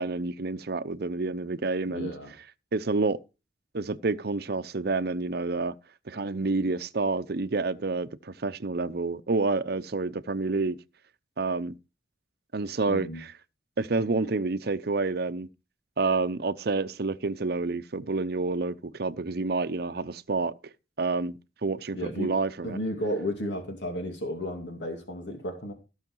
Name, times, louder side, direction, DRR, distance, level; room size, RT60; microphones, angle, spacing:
voice 1, 0.0-2.1 2.7-3.2 3.7-5.7 6.1-10.8 11.4-11.7 12.5-13.3 13.8-15.5 16.0-20.5 21.0-22.8, right 3 dB, 60° right, 0.7 m, -29 dB
voice 2, 1.9-2.3 12.9-13.2 21.9-22.3 22.6-25.7, equal, 80° left, 2.4 m, -33 dB
16.5 x 6.5 x 4.7 m
head